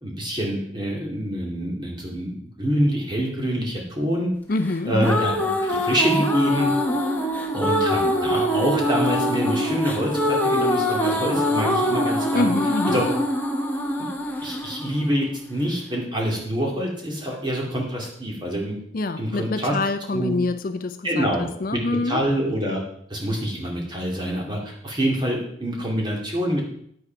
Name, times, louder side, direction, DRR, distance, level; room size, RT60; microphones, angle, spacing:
voice 1, 0.0-4.3 4.8-6.7 7.5-12.5 12.9-13.0 14.4-18.7 19.2-19.8 20.1-20.3 21.0-21.8 22.0-22.8 23.1-26.6, equal, 25° right, -1 dB, 2.5 m, -26 dB
voice 2, 4.5-4.9 12.3-13.0 18.9-22.2, left 3 dB, 45° left, 10 dB, 0.5 m, -26 dB
sound 1, 4.7-15.7, equal, 10° left, 1.1 m, -23 dB
9.8 x 8.6 x 4.6 m, 0.68 s
head